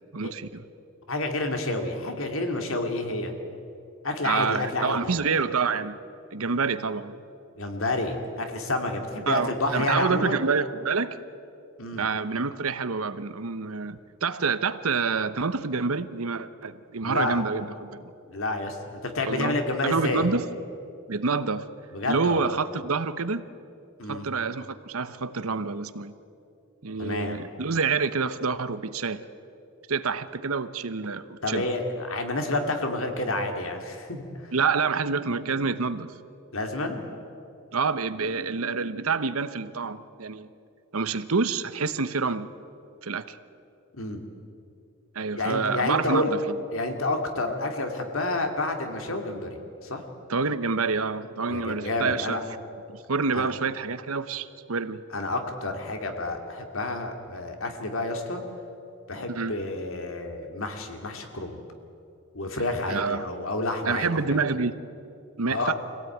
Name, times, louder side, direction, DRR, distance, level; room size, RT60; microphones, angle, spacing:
voice 1, 0.1-0.6 4.2-6.0 6.3-7.2 9.3-11.2 12.0-18.1 19.3-19.5 19.8-20.5 21.1-21.7 22.1-23.5 24.1-26.1 26.8-29.2 29.9-31.7 34.5-36.1 37.7-40.5 40.9-42.5 43.0-43.4 45.1-46.5 50.3-52.4 53.1-55.0 59.3-59.5 62.9-63.3 63.8-64.8 65.4-65.7, right 4 dB, 80° right, 13 dB, 1.0 m, -27 dB
voice 2, 1.1-3.3 4.0-5.2 7.6-10.4 11.8-12.1 17.0-17.4 18.3-20.3 21.9-22.5 24.0-24.3 27.0-27.4 31.4-34.5 36.5-37.0 43.9-44.2 45.3-46.3 46.7-50.0 51.5-52.4 53.3-53.5 55.1-58.4 59.1-61.6 62.3-64.4 65.5-65.7, left 2 dB, 70° left, 4 dB, 2.6 m, -29 dB
25.5 x 17.0 x 9.3 m, 2.7 s
head